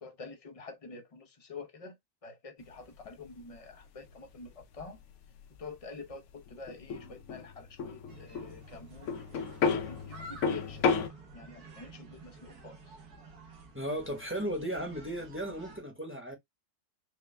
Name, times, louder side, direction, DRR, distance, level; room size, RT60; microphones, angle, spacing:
voice 1, 0.0-2.0 2.2-5.0 5.6-9.1 9.6-11.1 11.3-13.0, left 4 dB, 40° left, 0.4 m, -47 dB
sound 1, 2.6-11.1, left 5 dB, 65° left, 0.8 m, -33 dB
sound 2, 8.1-15.8, right 2 dB, 80° right, 1.6 m, -51 dB
voice 2, 13.7-16.4, right 1 dB, 10° right, 0.9 m, -35 dB
4.7 x 2.2 x 3.3 m
omnidirectional pair, 1.6 m